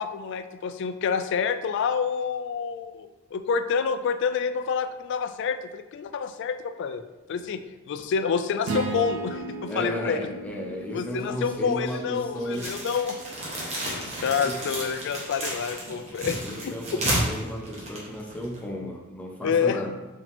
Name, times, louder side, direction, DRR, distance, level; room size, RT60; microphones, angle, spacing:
voice 1, 0.0-7.0 7.3-7.6 7.9-10.2 10.9-13.2 13.8-16.8 19.4-19.9, left 6 dB, 60° left, 10 dB, 0.3 m, -28 dB
sound 1, 8.7-12.9, right 3 dB, 80° right, 0.5 m, -36 dB
sound 2, 8.8-14.1, equal, 80° left, 0.8 m, -45 dB
voice 2, 9.7-12.8 14.4-14.6 16.2-19.9, equal, 5° left, 0 dB, 0.5 m, -34 dB
sound 3, 12.5-18.6, right 1 dB, 30° right, 1.2 m, -32 dB
4.9 x 2.7 x 3.5 m, 1.1 s
head